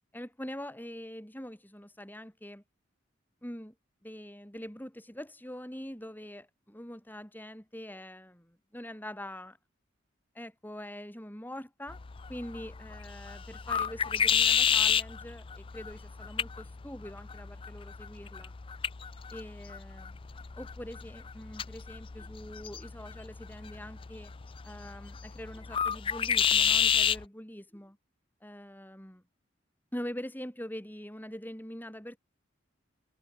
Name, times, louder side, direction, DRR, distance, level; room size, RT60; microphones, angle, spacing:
voice 1, 0.1-2.6 3.4-3.7 4.0-9.6 10.3-12.0 12.3-18.5 19.3-20.2 20.6-24.3 24.6-28.0 28.4-29.2 29.9-32.2, equal, 10° left, 3.9 m, -44 dB
sound 1, 11.9-27.2, left 8 dB, 25° left, 0.4 m, -31 dB
head